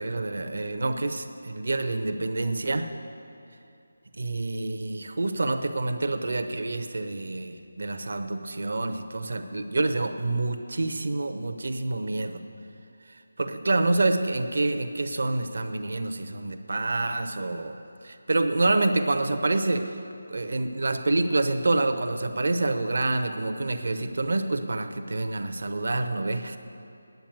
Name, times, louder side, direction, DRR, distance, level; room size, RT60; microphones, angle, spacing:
voice 1, 0.0-2.9 4.2-12.4 13.1-17.8 18.0-20.0 20.3-26.6, right 2 dB, 60° right, 7 dB, 0.9 m, -27 dB
9.3 x 8.7 x 9.4 m, 2.6 s
figure-of-eight pair, 155°, 0 cm